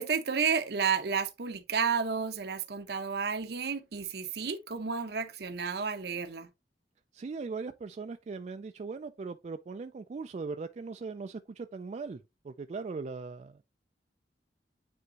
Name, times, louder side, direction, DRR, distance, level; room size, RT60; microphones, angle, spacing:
voice 1, 0.0-6.5, right 6 dB, 65° right, 0.7 m, -31 dB
voice 2, 7.1-13.6, right 4 dB, 40° right, 0.3 m, -39 dB
9.5 x 3.5 x 2.8 m
head